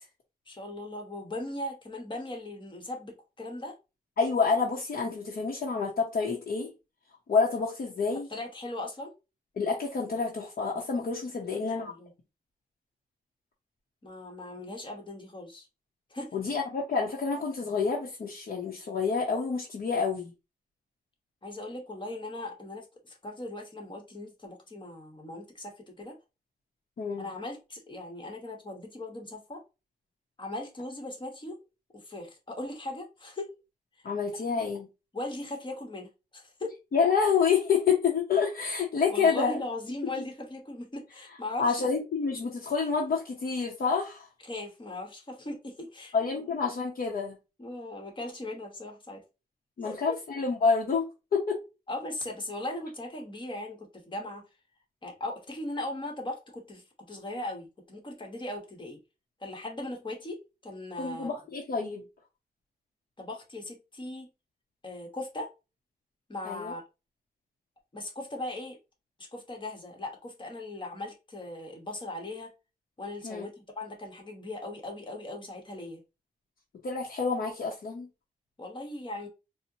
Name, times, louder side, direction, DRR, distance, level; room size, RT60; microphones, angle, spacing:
voice 1, 0.5-3.7 8.3-9.1 11.4-12.1 14.0-15.7 16.1-16.4 21.4-26.2 27.2-29.6 30.4-31.6 31.9-33.5 35.1-36.7 39.1-41.8 44.5-46.1 47.6-49.2 49.8-50.2 51.9-54.4 55.0-59.0 59.4-61.3 63.2-64.3 64.8-65.5 66.3-66.8 67.9-68.8 69.3-72.5 73.0-76.0 78.6-79.3, left 1 dB, 30° left, 1.1 m, -39 dB
voice 2, 4.2-6.7 7.3-8.3 9.6-11.9 16.3-20.3 27.0-27.3 34.0-34.9 36.9-39.6 41.6-44.3 46.1-47.4 49.8-51.6 61.0-62.1 66.4-66.7 73.2-73.5 76.8-78.1, left 5 dB, 70° left, 0.7 m, -28 dB
4.3 x 2.1 x 2.7 m
wide cardioid pair, 115°, 16 cm